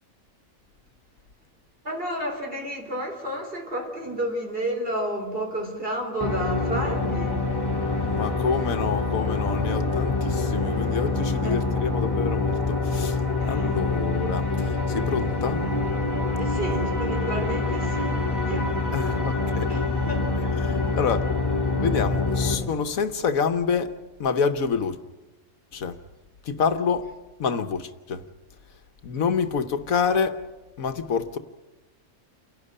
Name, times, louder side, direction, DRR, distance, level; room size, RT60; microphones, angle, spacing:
voice 1, 1.8-7.5 11.1-11.5 13.4-13.8 16.4-18.9 19.7-20.9, right 1 dB, 40° right, 2 dB, 4.2 m, -31 dB
sound 1, 6.2-22.5, left 3 dB, 15° left, 3.2 m, -25 dB
voice 2, 8.0-13.2 13.5-14.5 14.9-15.6 18.9-19.7 20.6-21.3 21.8-23.9 24.2-25.0 25.7-26.0 26.4-27.1 27.4-28.2 29.0-30.4 30.8-31.4, left 6 dB, 80° left, 10 dB, 1.5 m, -27 dB
29.0 x 12.0 x 9.9 m, 1.2 s
omnidirectional pair, 1.4 m